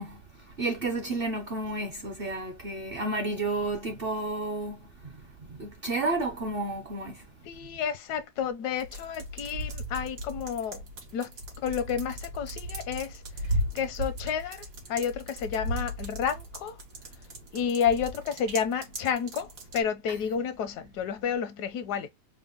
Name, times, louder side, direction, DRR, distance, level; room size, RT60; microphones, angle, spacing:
voice 1, 0.0-7.3 20.1-20.2, right 2 dB, 50° right, 0.7 m, -32 dB
voice 2, 7.4-10.8 11.1-11.3 11.6-13.2 13.7-16.8 17.5-22.1, left 7 dB, 80° left, 1.2 m, -30 dB
sound 1, 8.7-19.8, equal, 75° right, 1.9 m, -36 dB
4.3 x 2.1 x 3.6 m
omnidirectional pair, 1.7 m